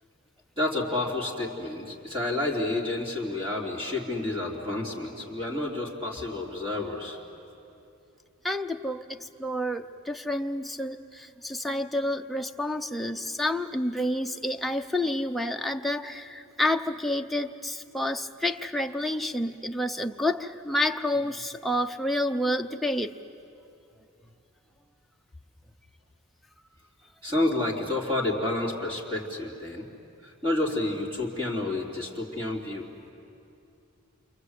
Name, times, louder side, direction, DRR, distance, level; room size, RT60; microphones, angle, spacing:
voice 1, 0.6-7.2 27.2-29.9 30.2-32.9, left 2 dB, 25° right, -2 dB, 3.3 m, -30 dB
voice 2, 8.4-9.0 9.4-23.1, left 1 dB, ahead, 3 dB, 0.7 m, -29 dB
28.5 x 26.0 x 8.2 m, 2.7 s
head